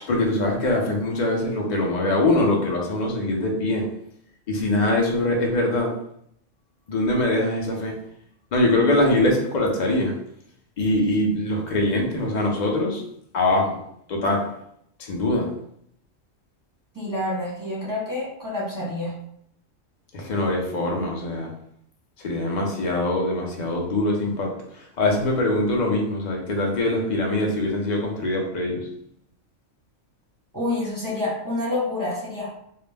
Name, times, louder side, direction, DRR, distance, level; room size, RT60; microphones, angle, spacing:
voice 1, 0.1-3.9 4.5-5.9 6.9-8.0 8.5-10.1 10.8-13.0 13.3-13.8 14.1-14.4 15.0-15.5 20.1-21.5 22.2-28.9, left 1 dB, 60° left, 0 dB, 0.4 m, -23 dB
voice 2, 16.9-19.1 30.5-32.6, left 2 dB, 20° right, -7 dB, 0.7 m, -28 dB
2.3 x 2.0 x 3.3 m, 0.72 s
omnidirectional pair, 1.4 m